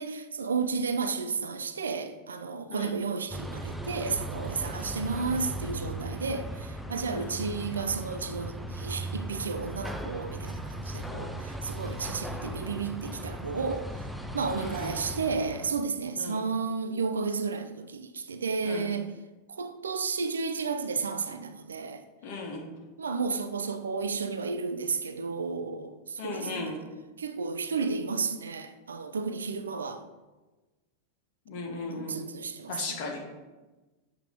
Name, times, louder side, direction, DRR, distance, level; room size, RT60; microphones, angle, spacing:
voice 1, 0.0-13.9 14.3-19.1 19.5-22.0 23.0-26.7 27.2-30.0 31.9-33.0, right 5 dB, 70° right, 0.4 m, -32 dB
voice 2, 2.7-3.1 7.1-7.5 11.1-11.3 14.5-15.0 16.2-16.4 18.6-18.9 22.2-22.6 26.2-26.8 31.5-32.2 32.7-33.2, left 3 dB, 45° left, 1.3 m, -37 dB
sound 1, 3.3-15.8, right 1 dB, ahead, 0.4 m, -37 dB
7.7 x 2.9 x 4.9 m
figure-of-eight pair, 90°, 0 cm